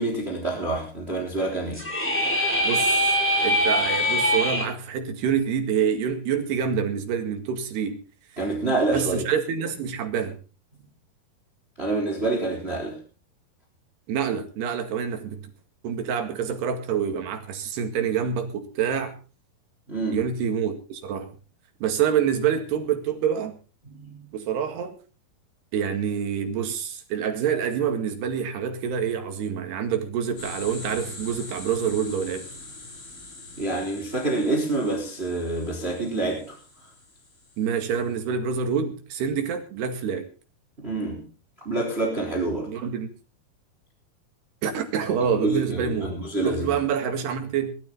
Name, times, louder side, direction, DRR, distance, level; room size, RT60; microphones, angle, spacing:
voice 1, 0.0-1.9 8.4-9.3 11.8-13.0 19.9-20.2 23.9-24.3 33.6-36.6 40.8-41.2 41.6-42.7 45.4-46.7, right 2 dB, 15° right, 3.7 m, -27 dB
sound 1, 1.7-4.6, equal, 5° left, 4.5 m, -23 dB
voice 2, 2.6-3.1 3.4-8.0 8.6-10.4 14.1-15.4 15.8-19.1 20.1-21.3 21.8-23.6 24.3-25.0 25.7-32.5 37.6-40.3 42.7-43.1 44.6-46.2 46.4-47.7, right 7 dB, 85° right, 4.1 m, -27 dB
sound 2, 30.4-38.1, left 2 dB, 60° left, 8.5 m, -43 dB
20.0 x 13.0 x 4.0 m
omnidirectional pair, 4.6 m